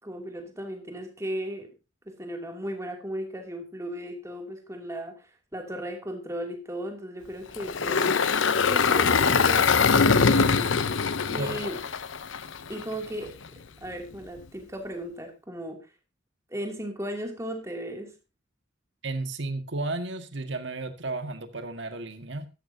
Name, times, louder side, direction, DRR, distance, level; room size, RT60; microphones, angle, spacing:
voice 1, 0.0-1.7 2.0-8.1 8.4-10.8 11.3-11.8 12.7-13.4 13.8-15.9 16.5-18.1, equal, 15° right, 3 dB, 2.7 m, -36 dB
Engine, 7.5-12.8, left 5 dB, 75° left, 0.7 m, -22 dB
voice 2, 19.0-22.5, right 2 dB, 65° right, 7 dB, 1.7 m, -33 dB
14.0 x 13.5 x 2.8 m, 0.28 s
head